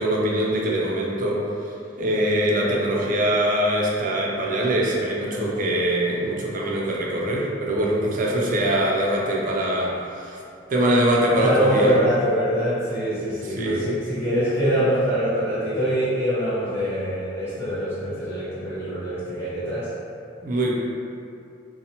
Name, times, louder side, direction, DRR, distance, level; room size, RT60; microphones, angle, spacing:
voice 1, 0.0-1.5 2.0-10.4 10.7-11.9 13.4-13.8 20.4-20.7, right 1 dB, 45° right, -3 dB, 0.4 m, -23 dB
voice 2, 11.3-19.9, equal, 10° left, -13 dB, 0.6 m, -24 dB
2.8 x 2.0 x 2.7 m, 2.5 s
head